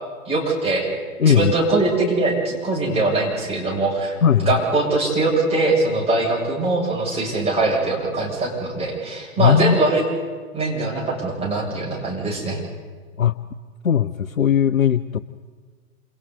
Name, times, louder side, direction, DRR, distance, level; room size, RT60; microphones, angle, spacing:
voice 1, 0.3-0.9 1.3-10.0 10.5-12.6, right 2 dB, 15° right, -4 dB, 7.5 m, -22 dB
voice 2, 1.2-1.5 4.2-4.6 9.4-9.8 13.2-13.4 13.8-15.2, left 8 dB, 75° left, 13 dB, 0.8 m, -18 dB
29.0 x 28.0 x 4.1 m, 1.6 s
figure-of-eight pair, 105°, 42 cm